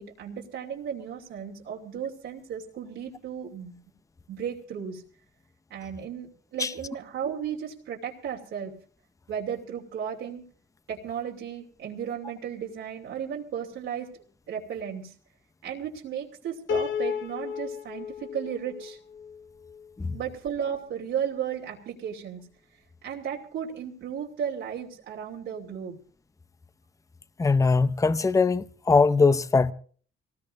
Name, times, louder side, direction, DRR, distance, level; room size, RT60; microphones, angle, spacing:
voice 1, 0.0-3.7 4.3-5.0 5.7-8.7 9.3-10.4 10.9-14.1 14.5-15.1 15.6-19.0 20.1-22.5 23.0-26.0, right 8 dB, 80° right, 2.8 m, -34 dB
Piano, 16.7-19.9, left 7 dB, 70° left, 2.0 m, -33 dB
voice 2, 27.4-29.7, left 4 dB, 15° left, 0.6 m, -21 dB
25.0 x 19.0 x 2.6 m
cardioid pair, 90°, 20 cm